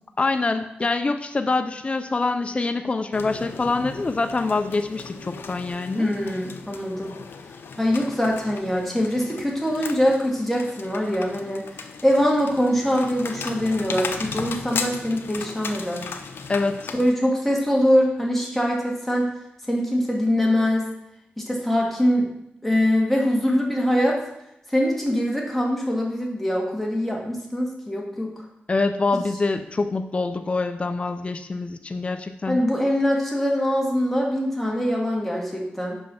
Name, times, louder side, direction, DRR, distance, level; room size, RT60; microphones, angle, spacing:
voice 1, 0.2-6.1 16.5-16.9 28.7-32.6, left 3 dB, 30° left, 8 dB, 0.4 m, -25 dB
sound 1, 3.1-17.1, left 5 dB, 80° left, 0.6 m, -36 dB
voice 2, 6.0-7.1 7.8-11.7 12.0-16.1 16.9-19.3 19.7-20.9 21.4-22.3 22.6-24.2 24.7-28.3 32.5-36.0, equal, 5° left, -2 dB, 1.8 m, -23 dB
5.5 x 5.5 x 5.6 m, 0.82 s
wide cardioid pair, 90°, 4 cm